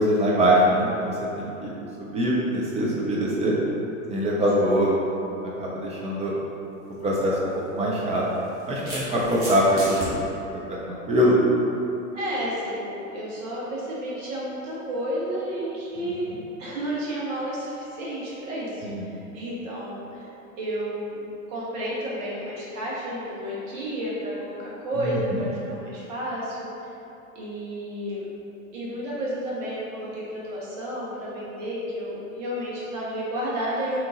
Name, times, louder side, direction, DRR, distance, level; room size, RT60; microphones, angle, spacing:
voice 1, 0.0-3.5 4.1-4.9 5.4-6.3 7.0-8.2 8.7-10.2 10.9-11.4 16.0-16.1 18.8-19.1 25.0-25.4, equal, 15° right, -5 dB, 0.4 m, -23 dB
sound 1, 6.9-7.1 8.2-10.1, right 1 dB, 30° right, 1.3 m, -35 dB
voice 2, 12.1-16.3 16.6-20.3 20.6-21.2 21.5-26.7 27.3-28.2 28.7-34.0, equal, 60° right, -6 dB, 1.4 m, -31 dB
3.8 x 3.0 x 3.7 m, 2.9 s
hypercardioid pair, 95°, 42 cm